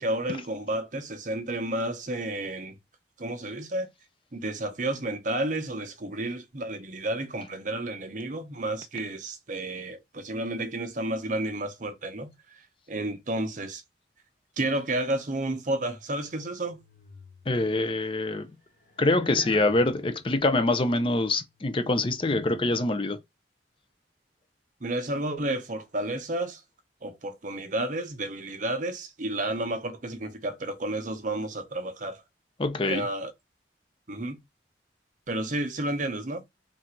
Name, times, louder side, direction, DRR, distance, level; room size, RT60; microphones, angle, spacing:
voice 1, 0.0-2.7 3.2-3.9 4.3-12.3 12.9-13.8 14.6-16.8 24.8-26.6 27.0-32.2 32.8-33.3 34.1-34.4 35.3-36.4, right 1 dB, 45° right, 0.8 m, -31 dB
sound 1, 16.4-17.8 18.7-20.5 21.1-22.6, left 3 dB, 50° left, 1.1 m, -50 dB
voice 2, 17.5-18.5 19.0-23.2 32.6-33.1, left 2 dB, 30° left, 0.5 m, -25 dB
3.8 x 2.5 x 4.4 m
head